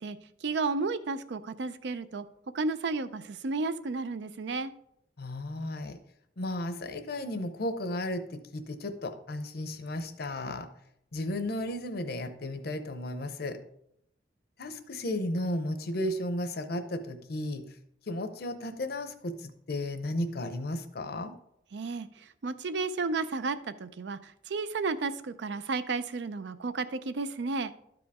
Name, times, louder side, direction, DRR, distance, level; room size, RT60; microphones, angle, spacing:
voice 1, 0.0-2.3 2.5-4.7 21.7-27.7, right 3 dB, 70° right, 12 dB, 0.5 m, -33 dB
voice 2, 5.2-6.0 6.4-10.7 11.1-13.6 14.6-17.7 18.1-21.3, left 1 dB, 60° left, 9 dB, 0.7 m, -34 dB
12.5 x 5.0 x 3.5 m, 0.75 s
head